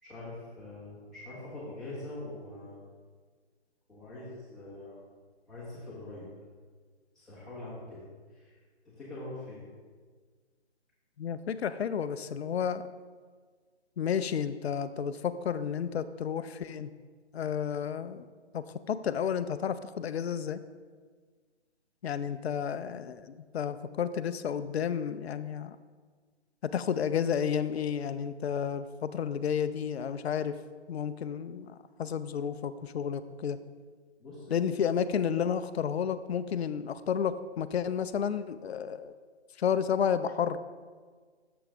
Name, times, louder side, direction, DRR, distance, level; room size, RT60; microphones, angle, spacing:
voice 1, 0.0-2.8 3.9-4.9 5.5-6.2 7.1-8.5 8.8-9.6 34.2-34.7, left 2 dB, ahead, -13 dB, 1.4 m, -43 dB
voice 2, 11.2-12.8 14.0-16.9 17.3-18.2 18.5-20.6 22.0-25.8 26.6-30.5 30.9-31.7 32.0-33.6 34.5-39.1 39.6-40.6, left 8 dB, 65° left, 12 dB, 0.5 m, -31 dB
7.1 x 5.9 x 3.7 m, 1.5 s
hypercardioid pair, 155°, 34 cm